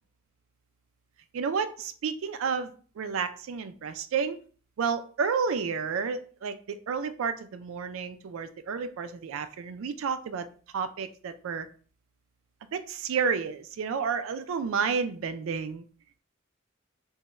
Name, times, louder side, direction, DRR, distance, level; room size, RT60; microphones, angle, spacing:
voice 1, 1.3-4.4 4.8-10.5 10.7-11.7 12.7-15.8, right 6 dB, 75° right, 11 dB, 0.3 m, -31 dB
3.4 x 2.1 x 3.0 m, 0.42 s
head